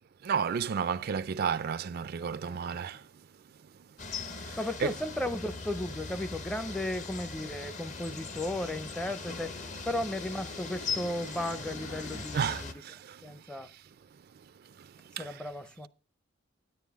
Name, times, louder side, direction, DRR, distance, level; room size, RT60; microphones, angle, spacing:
voice 1, 0.2-3.0 4.4-4.9 12.3-13.2 14.8-14.9 15.2-15.4, right 6 dB, 50° right, 0.4 m, -32 dB
voice 2, 2.2-3.0 4.6-9.6 9.9-12.7 13.2-13.7 15.1-15.9, left 1 dB, 5° left, 0.5 m, -35 dB
sound 1, 4.0-12.7, left 4 dB, 35° left, 0.8 m, -40 dB
sound 2, 6.9-12.5, left 2 dB, 80° left, 2.6 m, -50 dB
9.9 x 9.2 x 3.5 m
head